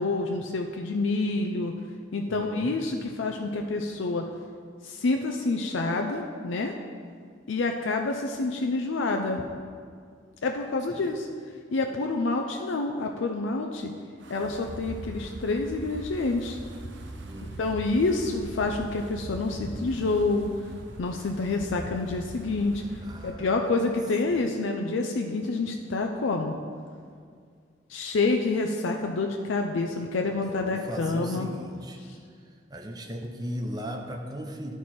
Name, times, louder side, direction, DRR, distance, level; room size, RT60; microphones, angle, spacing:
voice 1, 0.0-1.7 2.1-4.3 4.8-6.7 7.5-9.4 10.4-11.3 11.7-13.9 14.3-16.6 17.6-20.5 21.0-26.5 27.9-31.5 32.0-32.2, left 3 dB, 85° left, 3 dB, 0.5 m, -28 dB
voice 2, 2.3-2.8 10.9-11.3 17.2-17.6 23.0-23.9 24.3-24.5 30.4-32.0 32.4-34.7, equal, 20° right, 2 dB, 0.6 m, -38 dB
Wind, 14.2-23.4, right 1 dB, 75° right, 0.7 m, -41 dB
11.0 x 4.6 x 4.3 m, 2.1 s
head